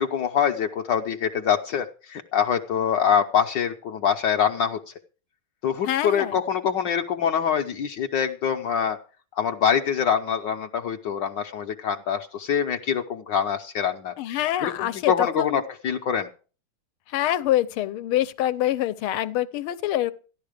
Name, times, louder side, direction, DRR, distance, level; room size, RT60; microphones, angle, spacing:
voice 1, 0.0-4.9 5.6-9.0 9.3-16.3, left 8 dB, 65° left, 1.3 m, -25 dB
voice 2, 5.9-6.3 14.2-15.6 17.1-20.1, left 13 dB, 85° left, 1.7 m, -25 dB
14.5 x 11.0 x 5.0 m
omnidirectional pair, 2.3 m